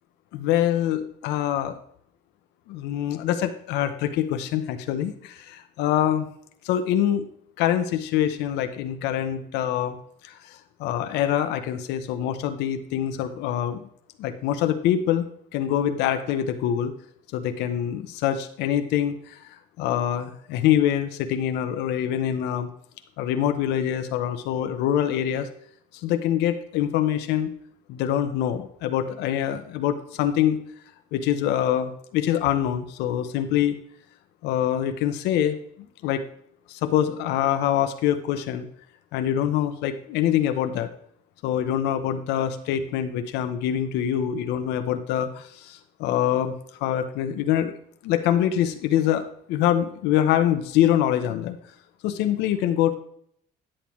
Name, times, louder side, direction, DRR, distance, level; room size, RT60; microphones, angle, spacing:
voice 1, 0.3-1.8 2.7-6.3 6.6-7.3 7.6-10.0 10.2-13.9 14.2-15.3 15.5-16.9 17.3-19.4 19.8-22.7 23.2-25.5 26.0-27.5 27.9-30.6 31.1-33.8 34.4-35.6 36.0-36.2 36.7-38.7 39.1-40.9 41.4-46.5 46.8-47.7 48.0-51.6 52.0-52.9, left 10 dB, 90° left, 8 dB, 0.7 m, -24 dB
9.9 x 8.6 x 3.0 m, 0.67 s
cardioid pair, 110°, 17 cm